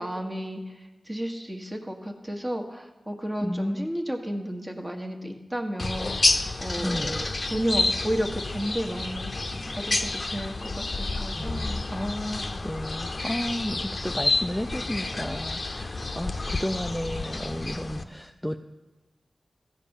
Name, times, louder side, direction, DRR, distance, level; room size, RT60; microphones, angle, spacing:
voice 1, 0.0-12.0, equal, 20° right, 3 dB, 1.4 m, -33 dB
voice 2, 3.4-3.9 6.7-7.2 11.1-18.6, equal, 5° left, 6 dB, 0.4 m, -33 dB
sound 1, 5.8-18.0, left 2 dB, 40° left, 0.7 m, -29 dB
14.5 x 5.2 x 7.1 m, 1.1 s
wide cardioid pair, 70°, 0 cm